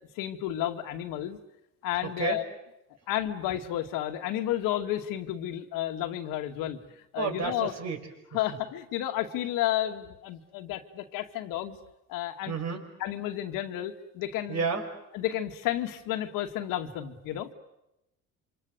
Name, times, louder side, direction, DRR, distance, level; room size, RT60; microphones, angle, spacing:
voice 1, 0.2-1.4 1.8-2.4 3.1-6.8 7.1-7.7 8.3-11.8 12.1-12.6 13.0-14.6 15.1-17.5, left 12 dB, 80° left, 5 dB, 2.3 m, -31 dB
voice 2, 2.0-2.4 7.2-8.1 12.5-12.8 14.5-14.9, right 5 dB, 50° right, 5 dB, 5.8 m, -31 dB
27.5 x 26.0 x 8.1 m, 0.88 s
cardioid pair, 100°, 33 cm